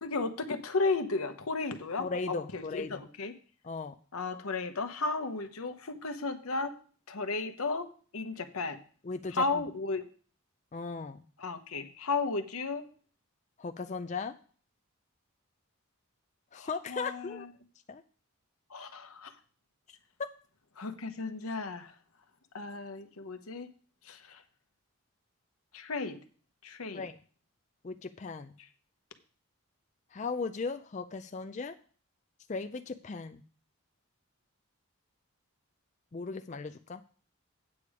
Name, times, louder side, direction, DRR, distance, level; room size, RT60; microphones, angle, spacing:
voice 1, 0.0-3.4 4.1-6.7 7.1-7.9 8.1-8.8 9.3-10.0 11.4-12.8 16.6-17.5 18.7-19.3 20.8-21.9 22.5-23.7 24.1-24.4 25.7-26.2 26.6-27.0, left 3 dB, 85° left, 9 dB, 1.0 m, -34 dB
voice 2, 2.0-3.0 3.6-3.9 9.0-9.6 10.7-11.2 13.6-14.3 16.5-17.5 17.9-18.0 26.9-27.2 27.8-28.5 30.1-31.8 32.5-33.4 36.1-37.0, left 4 dB, 35° left, 8 dB, 0.4 m, -37 dB
8.5 x 8.3 x 4.9 m, 0.42 s
head